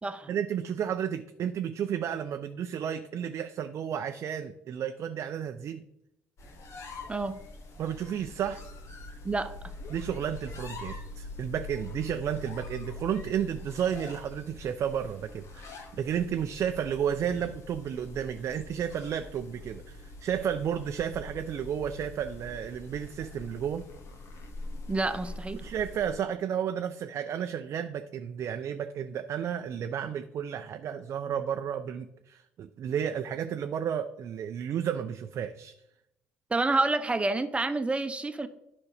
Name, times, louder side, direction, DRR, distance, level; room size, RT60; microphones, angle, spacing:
voice 1, 0.3-5.8 7.8-8.6 9.9-23.9 25.6-35.7, right 8 dB, 55° right, 7 dB, 0.6 m, -32 dB
sound 1, 6.4-26.2, left 2 dB, 55° left, 1.7 m, -44 dB
voice 2, 24.9-25.6 36.5-38.5, right 3 dB, 20° right, 10 dB, 0.9 m, -28 dB
10.5 x 5.3 x 5.0 m, 0.84 s
hypercardioid pair, 60°, 6 cm